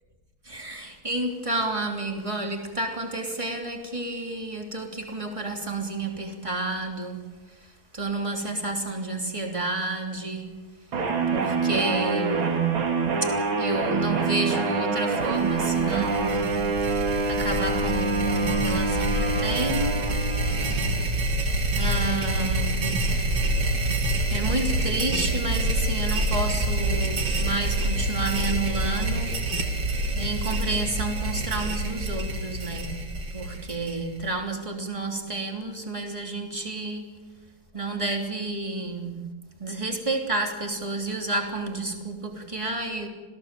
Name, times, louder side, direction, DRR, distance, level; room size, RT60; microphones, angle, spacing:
voice 1, 0.4-7.3 7.6-10.6 11.3-12.8 13.2-16.6 16.9-20.1 21.1-21.4 21.7-23.5 24.3-29.6 30.1-32.9 33.3-37.1 37.7-39.3 39.6-43.1, right 2 dB, 15° right, 3.1 m, -30 dB
sound 1, 10.9-21.2, right 4 dB, 75° right, 2.8 m, -26 dB
sound 2, 15.2-34.3, right 1 dB, 55° right, 3.1 m, -27 dB
27.0 x 17.0 x 7.7 m
omnidirectional pair, 2.2 m